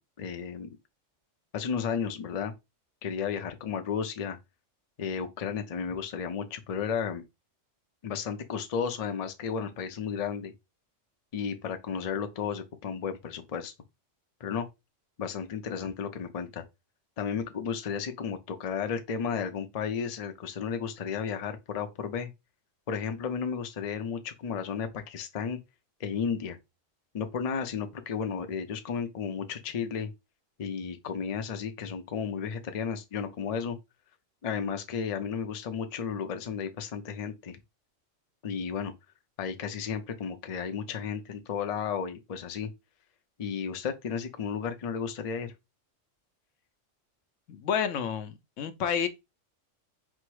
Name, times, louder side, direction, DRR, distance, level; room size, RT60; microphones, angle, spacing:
voice 1, 0.2-0.7 1.5-2.5 3.0-4.4 5.0-7.2 8.0-10.5 11.3-13.7 14.4-14.7 15.2-16.6 17.2-22.3 22.9-25.6 26.0-26.6 27.1-30.1 30.6-33.8 34.4-37.6 38.4-38.9 39.4-42.7 43.4-45.5, left 6 dB, 45° left, 0.5 m, -33 dB
voice 2, 47.5-49.1, left 8 dB, 80° left, 1.0 m, -30 dB
4.4 x 2.0 x 4.6 m
omnidirectional pair, 1.3 m